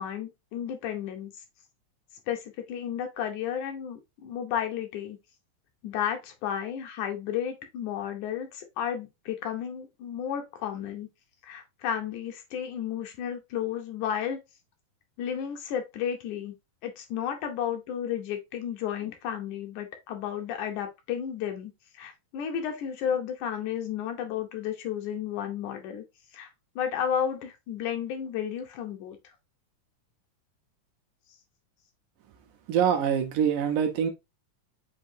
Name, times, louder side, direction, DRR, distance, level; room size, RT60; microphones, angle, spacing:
voice 1, 0.0-1.3 2.3-5.2 5.8-11.1 11.4-14.4 15.2-16.5 16.8-26.0 26.3-26.5 26.8-29.2, left 9 dB, 75° left, 2.1 m, -32 dB
voice 2, 32.7-34.1, right 8 dB, 80° right, 2.0 m, -24 dB
7.3 x 2.7 x 2.6 m
omnidirectional pair, 3.8 m